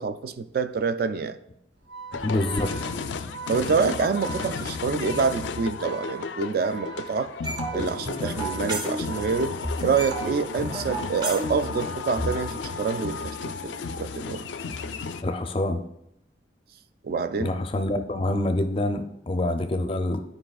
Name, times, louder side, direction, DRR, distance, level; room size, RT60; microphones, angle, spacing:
voice 1, 0.0-1.4 3.5-7.3 7.7-9.5 9.8-13.4 13.6-14.5 17.0-17.5, right 5 dB, 55° right, 12 dB, 0.3 m, -27 dB
Organ, 1.8-10.9, right 5 dB, 80° right, 0.8 m, -41 dB
sound 1, 2.1-15.2, left 4 dB, 85° left, 0.4 m, -33 dB
voice 2, 2.2-2.7 15.2-15.8 17.4-20.2, left 1 dB, 30° left, 8 dB, 0.4 m, -26 dB
sound 2, 7.4-9.4 9.6-12.4, right 2 dB, 25° right, 0.7 m, -32 dB
9.9 x 4.8 x 2.3 m, 0.79 s
head